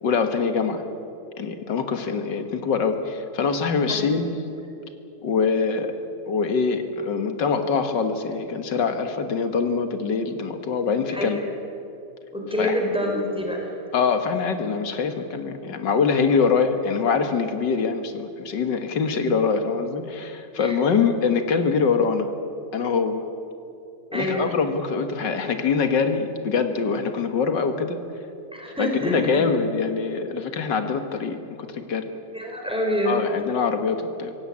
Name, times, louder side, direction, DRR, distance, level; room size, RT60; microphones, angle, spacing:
voice 1, 0.0-0.8 1.4-4.3 5.2-5.9 6.3-11.4 12.6-12.7 13.9-22.3 22.7-23.2 24.1-28.0 28.8-32.1 33.1-34.4, left 5 dB, 85° left, 7 dB, 2.2 m, -24 dB
voice 2, 11.1-11.4 12.3-13.7 20.6-20.7 24.1-24.5 28.5-29.4 32.3-33.2, equal, 5° right, 0 dB, 4.5 m, -26 dB
25.5 x 17.0 x 8.6 m, 2.8 s
omnidirectional pair, 1.9 m